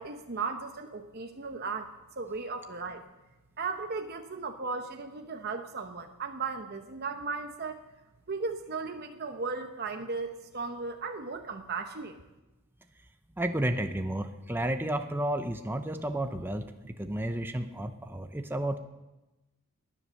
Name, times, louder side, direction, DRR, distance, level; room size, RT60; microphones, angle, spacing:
voice 1, 0.0-3.0 3.6-7.8 8.3-12.2, right 4 dB, 45° right, 5 dB, 0.9 m, -36 dB
voice 2, 13.4-18.8, right 1 dB, 10° right, 6 dB, 0.7 m, -32 dB
19.0 x 10.0 x 6.5 m, 1.0 s
head